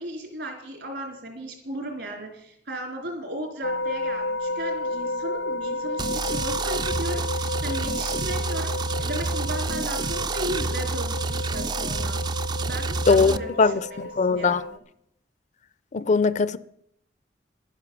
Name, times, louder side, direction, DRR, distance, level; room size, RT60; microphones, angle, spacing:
voice 1, 0.0-8.7 9.0-12.2 12.6-14.8, right 1 dB, 70° right, 3.9 m, -36 dB
sound 1, 3.6-14.8, left 2 dB, 90° left, 0.7 m, -32 dB
sound 2, 6.0-13.4, right 3 dB, 25° right, 0.4 m, -28 dB
voice 2, 13.1-14.6 15.9-16.6, left 4 dB, 40° left, 0.4 m, -21 dB
11.5 x 10.0 x 7.1 m
head